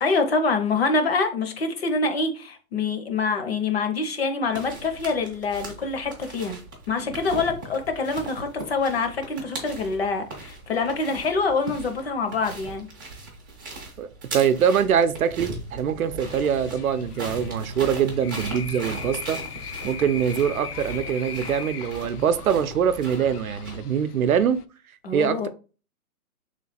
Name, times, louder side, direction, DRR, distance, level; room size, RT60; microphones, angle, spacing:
voice 1, 0.0-6.6 6.9-12.9 25.0-25.5, left 4 dB, 45° left, 0.8 m, -25 dB
sound 1, 4.5-23.8, right 2 dB, 15° right, 0.6 m, -39 dB
voice 2, 14.3-19.4 19.8-24.6 25.1-25.5, right 8 dB, 70° right, 0.6 m, -23 dB
sound 2, 16.2-24.6, left 7 dB, 90° left, 0.6 m, -39 dB
3.3 x 3.1 x 4.1 m
hypercardioid pair, 155°, 45 cm